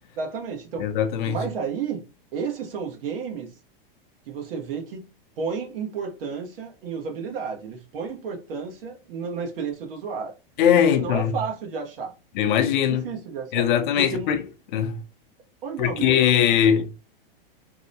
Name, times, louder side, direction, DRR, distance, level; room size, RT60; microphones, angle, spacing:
voice 1, 0.1-0.9 1.2-2.1 2.3-3.5 4.3-5.1 5.4-10.3 10.8-12.1 12.8-13.7 13.9-14.3 15.6-16.5, right 5 dB, 70° right, 0.9 m, -32 dB
voice 2, 0.8-1.4 10.6-11.3 12.4-13.1 13.5-14.4 14.7-14.9 15.8-16.9, left 9 dB, 55° left, 0.5 m, -20 dB
2.7 x 2.1 x 2.6 m
supercardioid pair, 140°, 29 cm